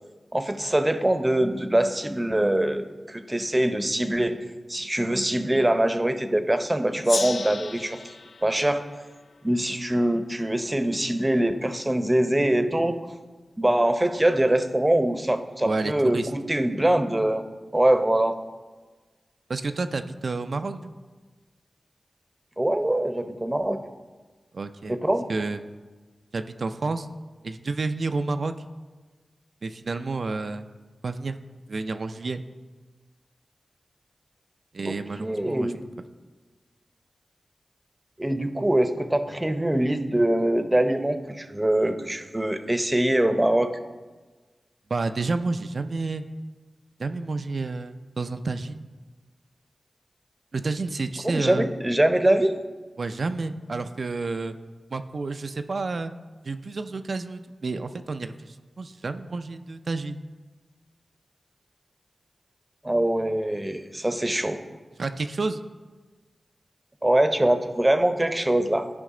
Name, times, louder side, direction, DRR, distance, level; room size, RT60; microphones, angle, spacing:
voice 1, 0.3-4.4 4.7-8.0 8.4-8.8 9.4-13.0 13.6-17.4 17.7-18.4 22.6-23.8 24.9-25.2 34.8-35.8 38.2-43.7 51.2-52.6 62.8-64.6 67.0-68.9, right 1 dB, 20° right, 9 dB, 0.8 m, -23 dB
Gong, 7.0-10.2, left 3 dB, 65° left, 0.3 m, -35 dB
voice 2, 15.6-16.3 19.5-20.9 24.5-25.0 25.3-25.6 26.3-27.1 27.4-28.7 29.6-30.7 31.0-31.4 31.7-32.4 34.7-35.7 44.9-46.2 47.0-48.9 50.5-51.7 53.0-54.6 54.9-56.1 56.4-60.2 65.0-65.6, right 3 dB, 65° right, 8 dB, 0.4 m, -30 dB
12.0 x 5.2 x 3.8 m, 1.3 s
cardioid pair, 40°, 0 cm